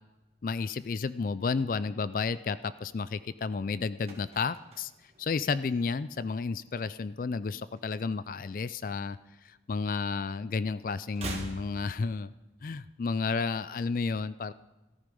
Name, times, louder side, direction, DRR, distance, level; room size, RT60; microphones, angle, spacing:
voice 1, 0.4-4.9 5.2-12.3 12.6-14.5, left 4 dB, 50° left, 16 dB, 0.3 m, -32 dB
sound 1, 4.0-6.3 6.6-6.9 7.2-8.7 8.9-10.3 10.5-12.7 12.9-13.0, right 2 dB, 35° right, 2.0 m, -45 dB
13.5 x 13.5 x 5.3 m, 1.1 s
head